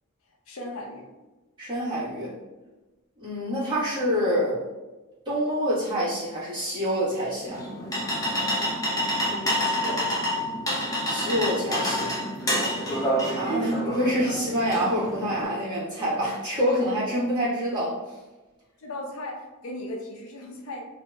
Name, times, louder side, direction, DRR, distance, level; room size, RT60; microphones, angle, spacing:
voice 1, 0.5-1.1 9.1-10.2 18.8-20.8, left 1 dB, 70° left, 0 dB, 0.5 m, -37 dB
voice 2, 1.6-2.3 3.2-4.6 5.2-7.6 11.0-12.1 13.3-18.0, equal, 20° right, -11 dB, 1.3 m, -26 dB
sound 1, 7.5-15.5, equal, 15° left, 0.6 m, -28 dB
2.8 x 2.7 x 2.3 m, 1.1 s
head